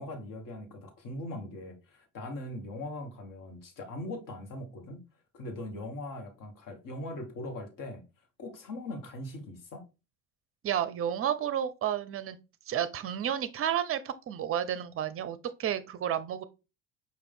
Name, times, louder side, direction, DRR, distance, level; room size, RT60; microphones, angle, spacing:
voice 1, 0.0-5.0 5.3-8.0 8.4-9.8, left 1 dB, 50° left, 1.4 m, -40 dB
voice 2, 10.6-12.4 12.7-16.4, right 10 dB, 35° right, 0.6 m, -31 dB
5.1 x 2.6 x 3.5 m
hypercardioid pair, 60°, 41 cm